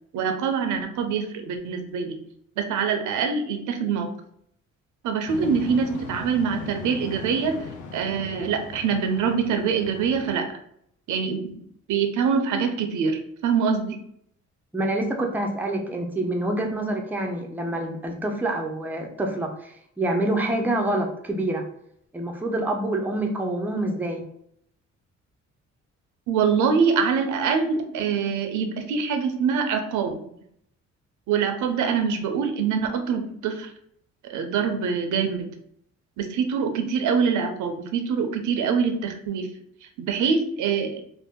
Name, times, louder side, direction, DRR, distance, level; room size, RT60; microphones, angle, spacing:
voice 1, 0.1-2.2 2.6-4.1 5.0-7.6 7.9-10.5 11.1-11.6 11.9-14.0 26.3-30.2 31.3-33.7 34.3-35.5 36.2-39.5 40.0-41.0, right 6 dB, 80° right, 6 dB, 0.6 m, -24 dB
sound 1, 5.3-10.4, left 5 dB, 75° left, 0.6 m, -39 dB
voice 2, 14.7-21.6 22.1-24.2, right 1 dB, 5° right, 2 dB, 0.5 m, -27 dB
2.6 x 2.0 x 3.5 m, 0.69 s
cardioid pair, 90°, 30 cm